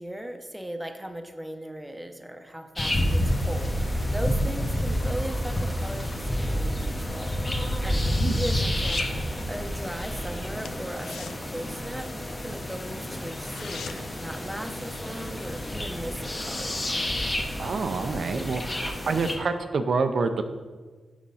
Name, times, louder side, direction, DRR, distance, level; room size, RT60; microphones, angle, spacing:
voice 1, 0.0-7.4 7.8-8.0 8.3-16.9, right 1 dB, 5° right, 5 dB, 0.8 m, -38 dB
sound 1, 2.8-19.4, equal, 25° left, 1.1 m, -29 dB
sound 2, 8.5-9.2 9.5-9.8 10.1-10.2 10.6-12.4 12.8-12.9 13.1-14.2 14.6-14.7, left 6 dB, 90° left, 0.4 m, -44 dB
voice 2, 17.6-20.4, right 4 dB, 65° right, 8 dB, 0.5 m, -27 dB
6.3 x 5.1 x 5.5 m, 1.4 s
cardioid pair, 85°, 0 cm